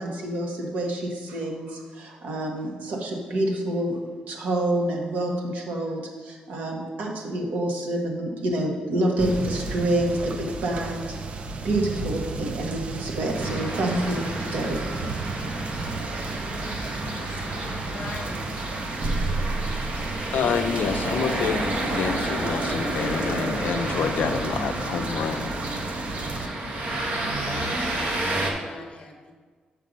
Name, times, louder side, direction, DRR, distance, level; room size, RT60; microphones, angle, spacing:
voice 1, 0.0-4.0 4.3-11.1 11.6-14.8, right 1 dB, 70° right, 0 dB, 1.4 m, -27 dB
sound 1, 9.2-26.5, right 3 dB, 45° right, 0.5 m, -33 dB
sound 2, 13.3-28.5, right 1 dB, 85° right, 1.2 m, -30 dB
voice 2, 17.1-18.6 28.4-29.3, left 3 dB, 40° left, 3 dB, 1.0 m, -42 dB
voice 3, 20.3-25.6, left 7 dB, 75° left, 9 dB, 0.4 m, -28 dB
6.5 x 5.5 x 5.2 m, 1.5 s
wide cardioid pair, 145°, 3 cm